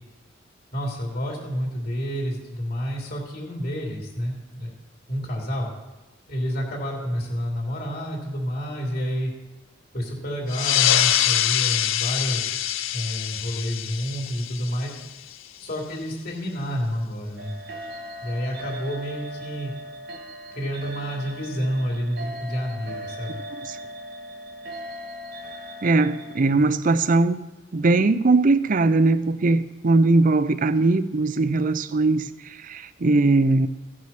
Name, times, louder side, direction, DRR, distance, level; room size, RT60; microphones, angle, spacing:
voice 1, 0.7-4.7 5.1-5.7 6.3-9.3 9.9-12.5 12.9-14.9 15.6-17.5 18.2-19.7 20.5-23.4, equal, 50° left, -1 dB, 3.0 m, -29 dB
sound 1, 10.5-15.6, left 12 dB, 80° left, 0.5 m, -24 dB
sound 2, 17.4-26.4, equal, 60° right, 1.5 m, -38 dB
voice 2, 25.8-27.4 27.7-33.7, right 3 dB, 45° right, 14 dB, 0.5 m, -20 dB
16.0 x 6.2 x 5.8 m, 1.1 s
head